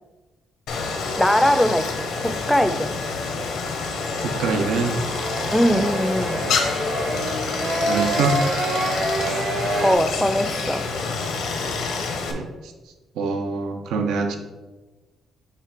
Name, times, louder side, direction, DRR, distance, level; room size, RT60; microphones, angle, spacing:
Stream, 0.7-12.3, left 4 dB, 85° left, 0.8 m, -27 dB
voice 1, 1.2-3.0 5.5-6.4 9.8-10.9, equal, 5° left, 10 dB, 0.4 m, -21 dB
sound 1, 3.8-9.9, right 1 dB, 65° right, 1.4 m, -28 dB
voice 2, 4.2-4.9 5.7-5.8 7.8-8.4 12.3-12.7 13.2-14.4, right 4 dB, 85° right, 4 dB, 0.6 m, -24 dB
5.6 x 3.2 x 5.1 m, 1.2 s
cardioid pair, 90°, 0 cm